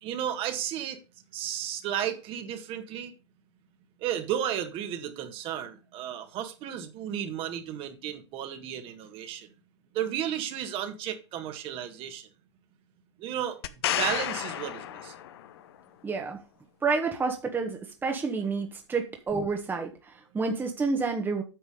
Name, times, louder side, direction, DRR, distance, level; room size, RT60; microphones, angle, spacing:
voice 1, 0.0-1.0 1.3-3.1 4.0-9.5 9.9-12.3 13.2-13.6 14.0-15.1, right 10 dB, 35° right, 7 dB, 1.7 m, -33 dB
sound 1, 13.6-15.6 19.3-19.4, left 12 dB, 60° left, 1.0 m, -31 dB
voice 2, 16.0-16.4 16.8-21.4, right 4 dB, 15° right, 4 dB, 1.4 m, -29 dB
9.2 x 6.1 x 5.0 m, 0.31 s
hypercardioid pair, 105°, 15 cm